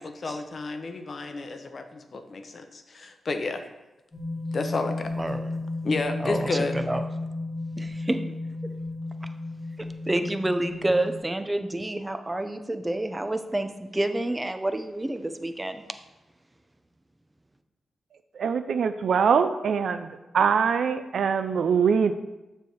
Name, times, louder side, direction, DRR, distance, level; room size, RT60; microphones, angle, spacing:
voice 1, 0.0-3.6 4.5-5.2 5.8-6.8, left 3 dB, 50° left, 7 dB, 0.7 m, -31 dB
sound 1, 4.1-11.2, left 2 dB, 30° left, 1.9 m, -33 dB
voice 2, 5.2-5.5 6.2-7.0 7.8-8.2 9.8-15.8, right 1 dB, 15° right, 8 dB, 0.6 m, -28 dB
voice 3, 18.4-20.1 20.3-22.1, right 6 dB, 75° right, 10 dB, 0.4 m, -23 dB
6.9 x 3.4 x 6.1 m, 1.0 s
cardioid pair, 85°, 0 cm